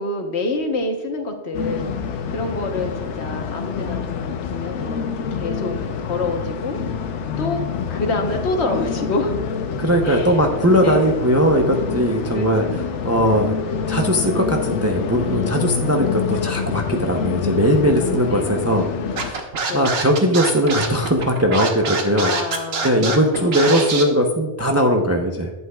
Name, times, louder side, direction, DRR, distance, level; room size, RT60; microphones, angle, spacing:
voice 1, 0.0-1.9 2.3-7.0 7.4-7.6 7.9-9.4 10.0-10.4 10.8-11.1 12.3-12.8 15.6-15.8 18.3-18.5 19.7-20.0 22.1-23.9, left 2 dB, 70° left, 4 dB, 1.3 m, -27 dB
sound 1, 1.5-19.3, left 6 dB, 85° left, 1.0 m, -27 dB
voice 2, 9.8-12.6 13.0-13.5 13.9-18.8 19.2-25.6, equal, 20° right, 2 dB, 0.5 m, -19 dB
Scratching (performance technique), 19.2-24.0, right 4 dB, 65° right, 1.1 m, -25 dB
11.5 x 8.1 x 2.3 m, 1.1 s
omnidirectional pair, 1.2 m